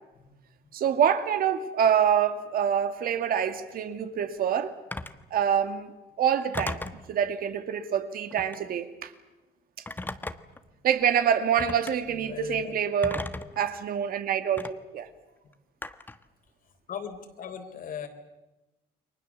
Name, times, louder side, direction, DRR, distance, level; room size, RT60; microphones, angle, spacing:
voice 1, 0.7-4.7 5.3-5.9 6.2-9.1 10.8-13.3 13.6-15.1, right 8 dB, 60° right, 2.4 m, -26 dB
Telephone, 4.9-5.2 6.5-7.0 8.3-8.7 9.9-10.6 11.6-11.9 13.0-13.6 14.6-14.7 15.8-16.2, left 2 dB, 10° left, 1.3 m, -35 dB
voice 2, 12.1-12.7 16.9-18.1, left 7 dB, 55° left, 3.9 m, -38 dB
29.5 x 23.5 x 7.3 m
cardioid pair, 110°, 17 cm